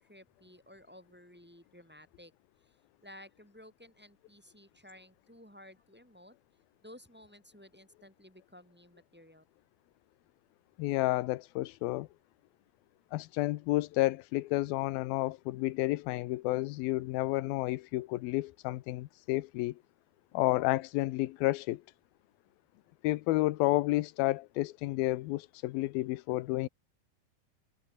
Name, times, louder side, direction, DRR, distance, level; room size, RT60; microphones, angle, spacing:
voice 1, 0.0-2.3 2.6-6.4 6.8-9.4, left 1 dB, 5° right, 3.4 m, -55 dB
voice 2, 10.8-12.1 13.1-19.8 20.3-21.8 23.0-26.7, left 18 dB, 90° left, 2.6 m, -31 dB
omnidirectional pair, 4.1 m